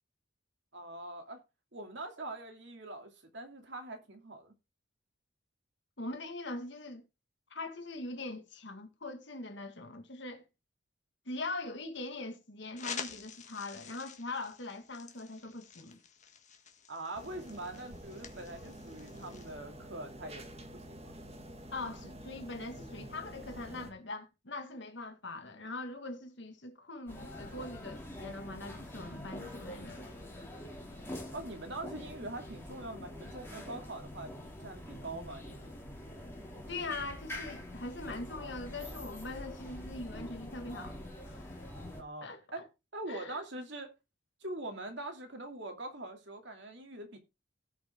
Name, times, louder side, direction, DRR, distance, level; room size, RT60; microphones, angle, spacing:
voice 1, 0.7-1.4 1.7-4.5 16.9-20.5 20.7-21.0 31.3-35.8 42.0-42.7 42.9-43.9 44.4-47.2, right 2 dB, 60° right, 2.5 m, -43 dB
voice 2, 6.0-7.0 7.5-10.4 11.3-16.0 21.7-30.1 36.7-41.0 41.2-41.7 42.2-42.6 43.1-43.4, left 2 dB, 60° left, 1.9 m, -42 dB
sound 1, 12.7-19.5, left 6 dB, 35° left, 1.7 m, -48 dB
sound 2, 17.1-23.9, equal, 30° right, 1.9 m, -48 dB
sound 3, 27.1-42.0, left 1 dB, 10° left, 2.8 m, -45 dB
17.5 x 5.8 x 3.7 m
head